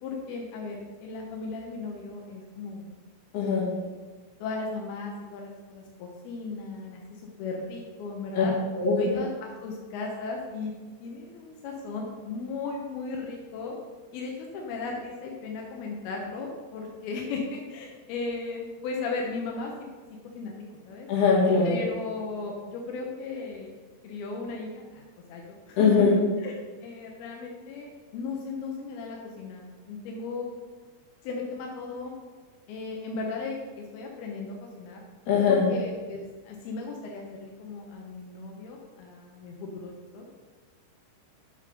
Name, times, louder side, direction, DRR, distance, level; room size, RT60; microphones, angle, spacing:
voice 1, 0.0-2.9 3.4-3.9 4.4-7.0 7.4-8.5 9.0-10.7 11.0-13.7 14.1-19.7 20.3-20.5 20.9-21.1 21.6-23.8 24.0-25.0 25.3-25.8 26.4-26.6 26.8-30.5 31.2-32.1 32.7-35.0 35.5-40.4, left 4 dB, 80° left, 0 dB, 2.2 m, -36 dB
voice 2, 3.3-3.7 8.3-8.5 8.7-9.0 21.1-21.8 25.8-26.2 35.3-35.7, left 5 dB, 55° left, -4 dB, 3.9 m, -21 dB
9.6 x 6.7 x 5.3 m, 1.4 s
omnidirectional pair, 5.9 m